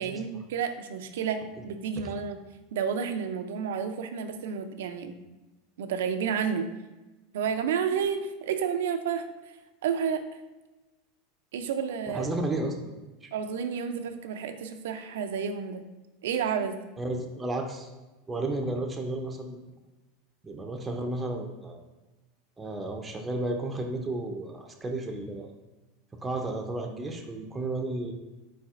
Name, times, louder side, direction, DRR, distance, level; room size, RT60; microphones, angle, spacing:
voice 1, 0.0-2.4 2.7-5.2 5.8-6.7 7.3-9.3 9.8-10.2 11.5-12.3 13.3-15.8 16.2-16.8, right 7 dB, 80° right, 8 dB, 0.4 m, -30 dB
voice 2, 12.1-12.9 13.2-13.3 17.0-17.9 18.3-19.6 20.4-21.8 22.6-25.5 26.2-28.1, right 2 dB, 15° right, 2 dB, 0.5 m, -32 dB
4.1 x 4.0 x 2.4 m, 1.1 s
hypercardioid pair, 110°, 0 cm